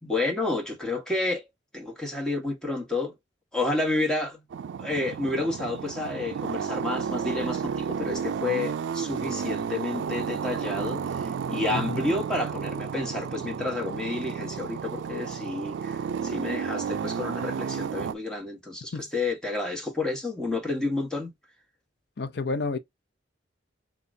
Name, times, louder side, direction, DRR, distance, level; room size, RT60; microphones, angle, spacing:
voice 1, 0.0-1.4 1.7-3.1 3.5-4.4 4.8-21.3, left 2 dB, 5° left, 1.3 m, -30 dB
sound 1, 4.5-18.1, right 6 dB, 80° right, 0.3 m, -32 dB
voice 2, 11.7-12.0 18.9-19.0 22.2-22.8, left 3 dB, 60° left, 0.5 m, -30 dB
6.7 x 2.4 x 2.6 m
head